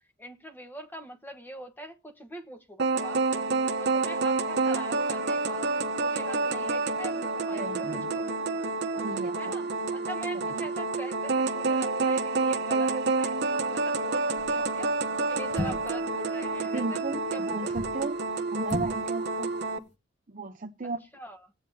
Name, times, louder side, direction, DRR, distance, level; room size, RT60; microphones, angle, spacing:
voice 1, 0.2-3.5 3.8-8.2 9.4-14.9 15.3-17.0 17.3-17.7 21.1-21.5, equal, 10° left, 1.2 m, -43 dB
sound 1, 2.8-19.8, right 3 dB, 60° right, 1.0 m, -28 dB
voice 2, 7.5-8.3 8.9-9.5 10.3-10.6 16.7-18.2 18.5-19.5 20.3-21.0, right 3 dB, 40° right, 0.7 m, -35 dB
sound 2, 14.4-14.7 15.5-16.0 17.5-18.0 18.6-19.0 19.3-19.4, left 2 dB, 60° left, 3.0 m, -34 dB
17.0 x 8.8 x 2.8 m
head